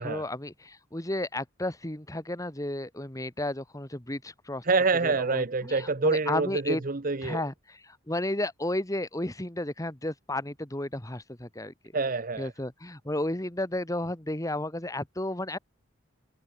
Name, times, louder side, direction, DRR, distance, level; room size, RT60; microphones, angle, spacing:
voice 1, 0.0-4.6 5.0-6.8 7.2-11.7 12.4-15.6, left 1 dB, 15° left, 1.9 m, -33 dB
voice 2, 4.6-7.4 11.9-12.5, right 3 dB, 45° right, 0.9 m, -26 dB
head